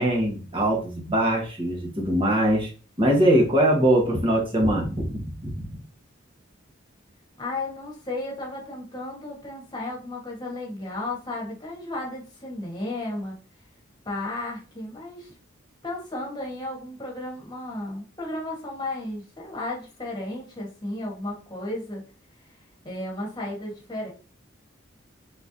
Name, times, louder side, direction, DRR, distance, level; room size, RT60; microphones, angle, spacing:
voice 1, 0.0-2.7 3.0-5.6, right 1 dB, 25° right, -1 dB, 1.3 m, -22 dB
voice 2, 7.4-13.4 14.0-15.3 15.8-22.0 22.8-24.1, left 2 dB, 20° left, -2 dB, 1.4 m, -34 dB
4.4 x 3.6 x 2.8 m, 0.36 s
head